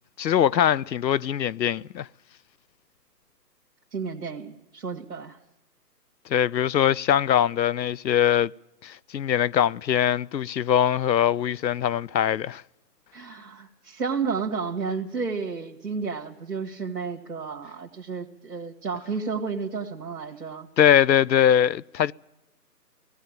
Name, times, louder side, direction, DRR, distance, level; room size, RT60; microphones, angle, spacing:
voice 1, 0.2-2.1 6.3-8.5 8.8-12.6 20.8-22.1, left 10 dB, 90° left, 0.6 m, -22 dB
voice 2, 3.9-5.4 13.1-20.7, right 5 dB, 65° right, 2.2 m, -32 dB
17.5 x 16.5 x 9.0 m
hypercardioid pair, 170°, 49 cm